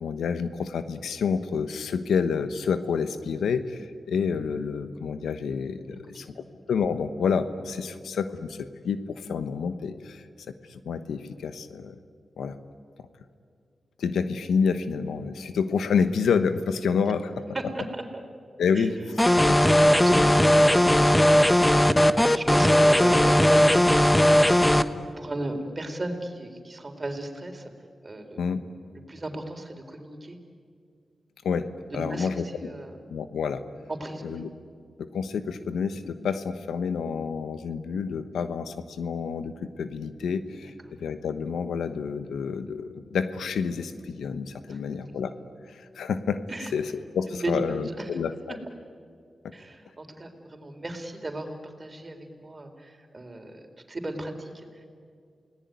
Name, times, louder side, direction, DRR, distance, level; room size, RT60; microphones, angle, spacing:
voice 1, 0.0-10.2 10.7-12.0 12.4-12.6 14.0-17.4 18.6-19.2 19.5-19.6 28.4-28.6 31.4-31.7 31.9-32.7 33.1-33.6 34.2-34.5 35.0-45.3 45.7-46.4 46.7-46.9 47.1-48.6, left 6 dB, 90° left, 11 dB, 1.1 m, -28 dB
voice 2, 6.1-6.5 17.5-18.2 18.7-18.9 19.9-21.1 22.3-24.0 25.2-27.7 28.0-28.4 29.1-30.4 31.9-33.0 33.9-34.4 40.6-40.7 44.7-44.8 46.5-46.7 47.3-48.1 49.5-54.9, right 1 dB, 40° right, 5 dB, 4.1 m, -35 dB
sound 1, 19.2-24.8, equal, 15° left, 1.3 m, -18 dB
28.5 x 19.0 x 9.5 m, 2.2 s
cardioid pair, 45°, 0 cm